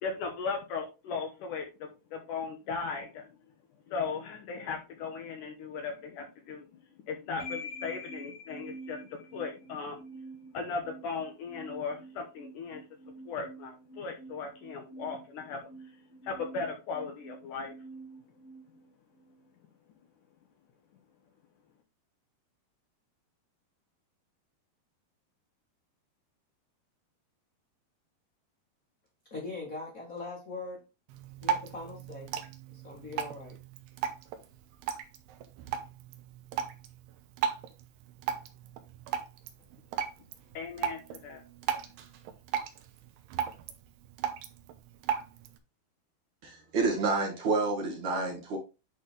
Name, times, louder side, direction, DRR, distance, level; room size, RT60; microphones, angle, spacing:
voice 1, 0.0-3.3 3.9-6.6 7.1-10.0 10.5-12.8 13.3-15.6 16.2-17.7 40.5-41.4, left 5 dB, 65° left, 2.1 m, -37 dB
sound 1, 7.4-19.5, equal, 35° left, 2.2 m, -47 dB
voice 2, 29.3-30.8 31.4-32.3 32.7-33.6, left 3 dB, 90° left, 0.7 m, -41 dB
Drip, 31.1-45.6, right 8 dB, 85° right, 3.0 m, -37 dB
voice 3, 46.4-48.6, right 3 dB, 55° right, 2.7 m, -29 dB
10.5 x 4.1 x 3.3 m
omnidirectional pair, 4.6 m